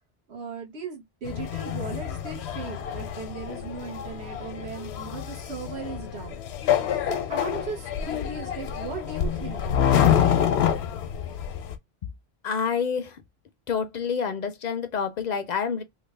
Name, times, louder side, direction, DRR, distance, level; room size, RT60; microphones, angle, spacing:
voice 1, 0.3-6.4 7.1-10.1, right 4 dB, 90° right, 1.2 m, -38 dB
sound 1, 1.2-11.7, left 9 dB, 85° left, 0.8 m, -27 dB
voice 2, 12.4-13.2 13.7-15.8, left 6 dB, 55° left, 0.5 m, -28 dB
3.2 x 2.2 x 3.3 m
omnidirectional pair, 1.1 m